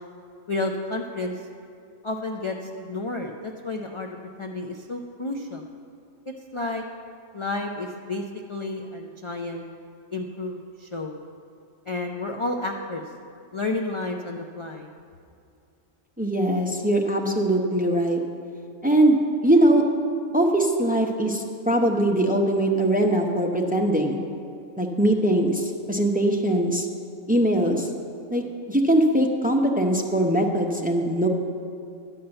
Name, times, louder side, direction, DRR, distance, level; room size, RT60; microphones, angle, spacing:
voice 1, 0.5-1.3 2.0-5.6 6.5-6.8 7.3-8.2 8.5-9.6 10.1-11.2 11.9-13.0 13.5-14.9, left 2 dB, 50° left, 1 dB, 0.3 m, -31 dB
voice 2, 16.2-18.2 18.8-19.2 19.4-19.8 20.3-24.2 24.8-26.9 27.3-27.9 28.3-31.3, right 1 dB, 10° right, 2 dB, 0.6 m, -21 dB
12.0 x 5.6 x 8.8 m, 2.4 s
omnidirectional pair, 1.4 m